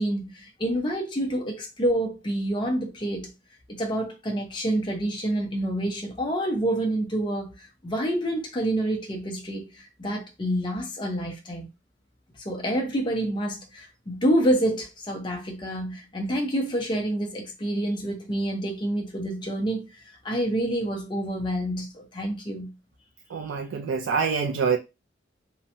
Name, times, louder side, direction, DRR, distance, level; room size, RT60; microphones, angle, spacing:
voice 1, 0.0-3.3 3.7-11.7 12.4-19.9 20.2-22.7, right 1 dB, 25° left, 0.5 m, -28 dB
voice 2, 23.3-24.8, right 5 dB, 85° right, 0.3 m, -25 dB
2.8 x 2.1 x 2.6 m
head